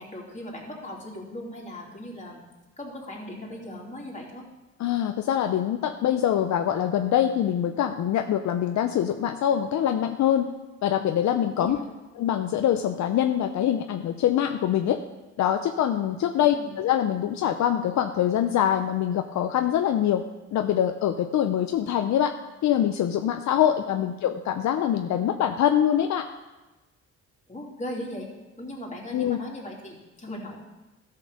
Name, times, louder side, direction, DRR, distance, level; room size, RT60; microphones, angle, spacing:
voice 1, 0.0-2.4 2.8-4.5 11.5-11.9 16.4-16.7 23.6-24.1 27.5-28.3 28.6-30.6, left 1 dB, 25° left, -2 dB, 2.9 m, -38 dB
voice 2, 4.8-10.5 10.8-11.8 12.2-15.0 15.4-20.2 20.5-22.3 22.6-26.3 29.1-29.4, left 10 dB, 70° left, 7 dB, 0.6 m, -24 dB
12.5 x 5.8 x 6.6 m, 1.1 s
cardioid pair, 90°, 30 cm